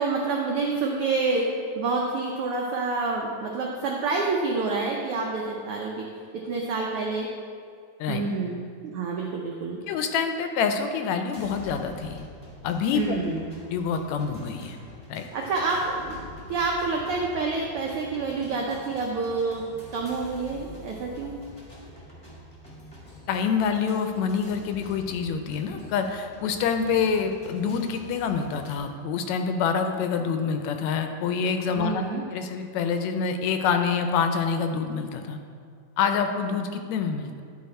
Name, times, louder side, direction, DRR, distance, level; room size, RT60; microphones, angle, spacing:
voice 1, 0.0-1.5 1.7-7.3 8.1-9.8 12.9-13.5 15.3-16.2 16.5-19.6 19.9-21.3 31.7-32.2, right 3 dB, 85° right, -1 dB, 1.2 m, -28 dB
voice 2, 9.9-12.3 12.6-13.0 13.7-14.8 15.1-15.3 23.3-32.0 32.3-35.4 36.0-37.4, left 6 dB, 80° left, 6 dB, 1.8 m, -26 dB
sound 1, 11.3-28.8, left 1 dB, 25° left, 0.9 m, -46 dB
10.5 x 4.0 x 4.3 m, 2.3 s
omnidirectional pair, 3.3 m